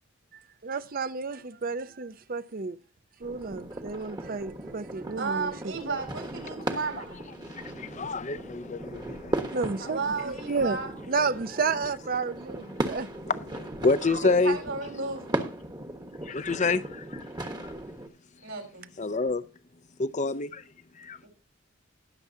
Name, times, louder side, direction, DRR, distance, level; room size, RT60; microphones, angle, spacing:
voice 1, 0.6-2.8 3.2-5.7 9.5-10.0 10.2-10.8 11.1-13.1 14.1-14.2, right 4 dB, 45° right, 0.6 m, -31 dB
sound 1, 3.2-18.1, right 1 dB, 20° right, 1.2 m, -37 dB
voice 2, 5.1-7.2 9.8-10.9 14.2-15.5 18.4-18.9 21.2-21.3, right 4 dB, 75° right, 4.4 m, -33 dB
voice 3, 7.4-9.6 13.3-14.6 16.2-17.7 19.0-19.4 20.0-20.6 20.9-21.2, left 3 dB, 35° left, 0.6 m, -28 dB
20.5 x 7.1 x 2.7 m
head